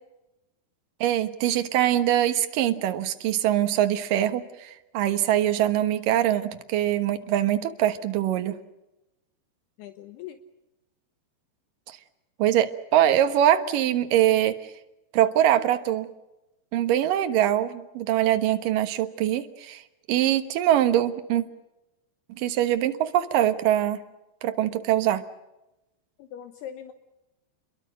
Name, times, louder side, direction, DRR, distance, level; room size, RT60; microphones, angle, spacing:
voice 1, 1.0-8.6 11.9-12.0 12.4-14.7 15.1-16.1 16.7-19.8 20.1-21.4 22.3-24.0 24.4-25.2, right 12 dB, 65° right, 8 dB, 2.6 m, -23 dB
voice 2, 9.8-10.4 26.2-26.9, left 10 dB, 75° left, 8 dB, 3.0 m, -40 dB
28.5 x 22.5 x 6.4 m, 0.96 s
omnidirectional pair, 5.0 m